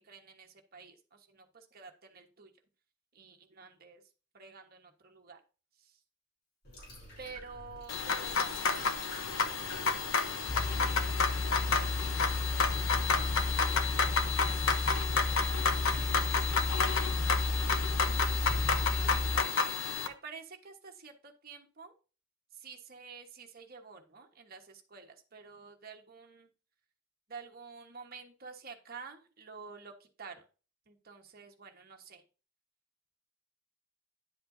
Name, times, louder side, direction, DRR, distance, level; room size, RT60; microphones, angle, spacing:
voice 1, 0.0-2.5 3.1-4.0 4.3-5.4 5.8-6.0 7.2-8.9 9.1-15.3 15.7-19.5 20.0-21.9 22.5-26.5 27.3-29.9 30.2-30.4 30.9-32.2, right 5 dB, 45° right, 3 dB, 1.3 m, -51 dB
sound 1, 6.6-13.8, left 1 dB, 50° left, 4.6 m, -49 dB
sound 2, 7.9-20.1, left 5 dB, 65° left, 0.9 m, -31 dB
sound 3, 10.5-19.4, left 2 dB, 35° left, 0.6 m, -33 dB
10.5 x 7.7 x 2.7 m, 0.36 s
head